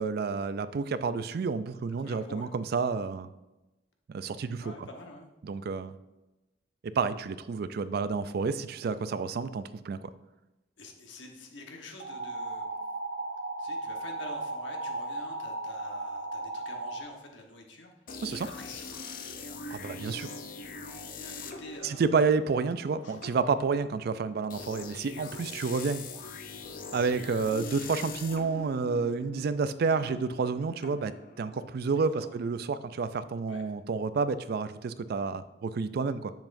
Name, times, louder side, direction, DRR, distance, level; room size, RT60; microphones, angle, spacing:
voice 1, 0.0-3.3 4.1-4.6 5.4-5.9 7.0-10.1 18.2-18.5 19.7-20.3 21.8-26.0 26.9-31.1 31.4-36.3, right 4 dB, 55° right, 13 dB, 0.4 m, -30 dB
voice 2, 1.9-2.5 4.6-5.3 10.8-12.8 13.6-19.5 19.8-19.9 20.9-22.1 23.0-23.2 32.2-32.3 33.5-33.6, left 2 dB, 80° left, 2 dB, 1.1 m, -48 dB
sound 1, 12.0-17.0, right 2 dB, 85° right, 0.9 m, -36 dB
sound 2, 18.1-31.8, left 3 dB, 50° left, 0.6 m, -43 dB
7.6 x 7.1 x 2.6 m, 1.0 s
head